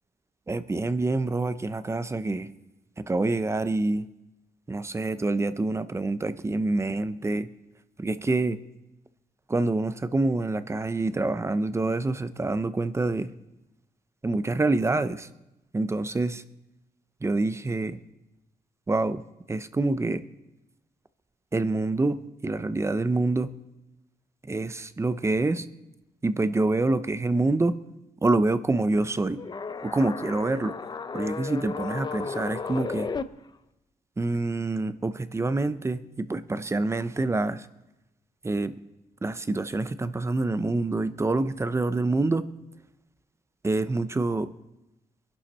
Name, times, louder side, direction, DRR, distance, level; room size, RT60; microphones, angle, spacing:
voice 1, 0.5-2.5 3.0-4.1 4.7-7.5 8.0-8.6 9.5-13.3 14.2-15.3 15.7-16.4 17.2-18.0 18.9-19.2 19.5-20.2 21.5-23.5 24.5-25.7 26.2-27.7 28.2-29.4 29.8-30.8 31.1-33.1 34.2-37.7 38.4-38.8 39.2-42.5 43.6-44.5, right 2 dB, 20° right, 13 dB, 0.6 m, -26 dB
sound 1, 29.4-33.2, left 5 dB, 30° left, 0.6 m, -34 dB
22.0 x 11.0 x 4.3 m, 0.95 s
cardioid pair, 110°, 15 cm